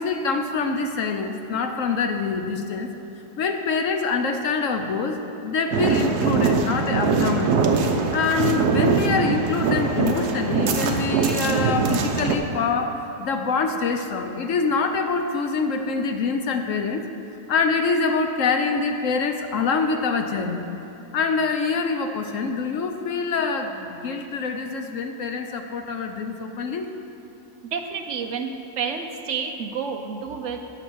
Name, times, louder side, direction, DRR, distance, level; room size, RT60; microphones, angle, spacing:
voice 1, 0.0-2.9 3.4-7.6 8.1-17.0 17.5-20.6 21.1-26.9, left 4 dB, 60° left, 5 dB, 0.9 m, -25 dB
sound 1, 5.7-12.3, right 5 dB, 75° right, 1.3 m, -22 dB
voice 2, 27.7-30.6, right 6 dB, 55° right, 5 dB, 0.9 m, -29 dB
11.5 x 7.1 x 6.2 m, 2.8 s
omnidirectional pair, 1.8 m